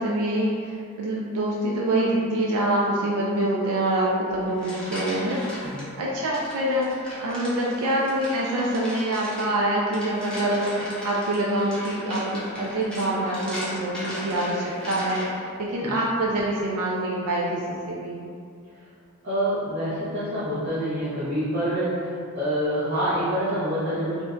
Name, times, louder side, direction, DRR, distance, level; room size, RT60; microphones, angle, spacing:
voice 1, 0.0-18.2, right 1 dB, 75° right, -4 dB, 0.4 m, -25 dB
sound 1, 4.3-5.8 6.3-15.5, equal, 5° left, 0.7 m, -37 dB
voice 2, 19.2-24.2, equal, 45° right, -13 dB, 0.7 m, -26 dB
2.5 x 2.1 x 3.5 m, 2.4 s
head